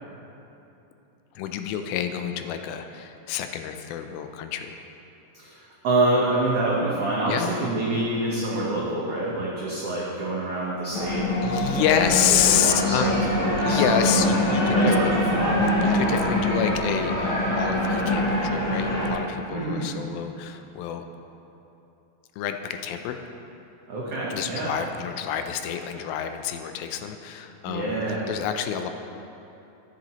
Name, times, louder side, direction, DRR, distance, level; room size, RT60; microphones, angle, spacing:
voice 1, 1.4-4.8 7.3-7.5 11.4-13.1 13.6-15.2 15.8-21.0 22.4-23.2 24.3-27.9 28.3-28.9, left 9 dB, 85° left, 7 dB, 2.3 m, -28 dB
voice 2, 5.3-11.2 11.7-14.4 14.7-15.7 19.5-19.9 23.9-24.7 27.7-28.3, right 2 dB, 85° right, -5 dB, 1.3 m, -27 dB
sound 1, 10.9-19.1, left 1 dB, 35° left, 2.3 m, -24 dB
13.5 x 7.7 x 2.9 m, 3.0 s
omnidirectional pair, 4.3 m